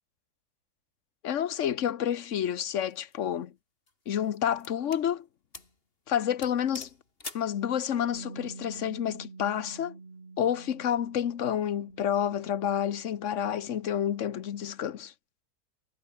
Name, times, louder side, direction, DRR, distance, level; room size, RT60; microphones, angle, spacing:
voice 1, 1.2-3.5 4.1-5.3 6.1-6.9 7.3-9.9 10.4-15.1, left 9 dB, 55° left, 1.2 m, -29 dB
sound 1, 2.8-3.1 3.9-5.1 5.5-5.8 6.1-6.2 6.4-7.5, left 3 dB, 35° left, 3.3 m, -45 dB
Bass guitar, 8.1-14.4, right 4 dB, 35° right, 2.0 m, -48 dB
omnidirectional pair, 1.8 m